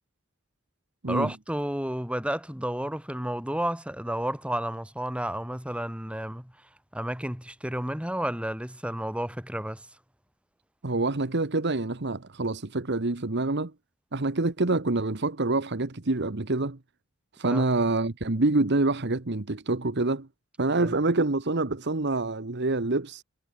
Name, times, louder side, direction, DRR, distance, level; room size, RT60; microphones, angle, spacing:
voice 1, 1.1-6.5 6.9-9.9 17.4-17.6 20.8-20.9, right 1 dB, 5° right, 3.8 m, -31 dB
voice 2, 10.8-13.7 14.1-16.8 17.4-20.3 20.6-23.2, right 2 dB, 55° right, 1.3 m, -26 dB
head